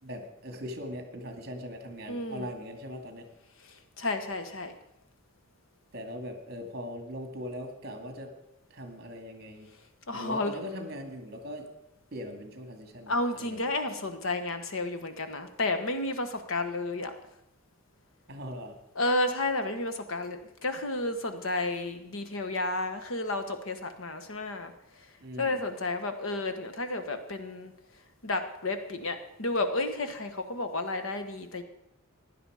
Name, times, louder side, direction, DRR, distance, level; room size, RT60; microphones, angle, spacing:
voice 1, 0.0-3.3 5.9-8.3 8.7-9.7 10.1-11.7 12.1-13.6 18.3-18.7 25.2-25.6, equal, 45° right, 5 dB, 2.2 m, -40 dB
voice 2, 2.1-2.5 4.0-4.7 10.1-10.6 13.1-17.1 18.9-24.7 25.4-27.7 28.2-31.6, left 2 dB, 65° left, 8 dB, 1.3 m, -31 dB
16.0 x 11.0 x 4.9 m, 0.85 s
head